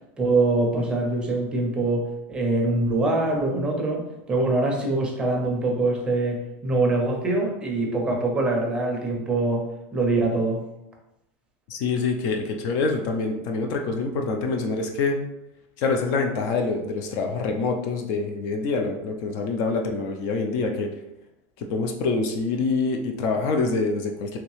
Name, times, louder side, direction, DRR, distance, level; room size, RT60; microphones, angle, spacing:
voice 1, 0.2-10.6, right 2 dB, 15° right, 0 dB, 0.6 m, -24 dB
voice 2, 11.7-15.2 15.8-20.9 21.6-24.4, left 4 dB, 50° left, 3 dB, 0.4 m, -26 dB
3.1 x 2.8 x 3.1 m, 0.89 s
supercardioid pair, 160°, 7 cm